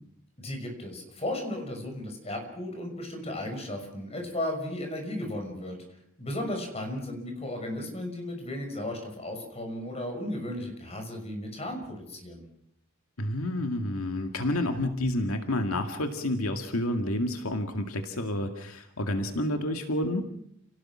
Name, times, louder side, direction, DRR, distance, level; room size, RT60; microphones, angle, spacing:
voice 1, 0.4-5.8 6.2-12.4, left 1 dB, 30° left, 3 dB, 6.0 m, -35 dB
voice 2, 13.2-20.3, left 1 dB, 85° left, 5 dB, 2.1 m, -29 dB
29.5 x 18.5 x 6.3 m, 0.72 s
head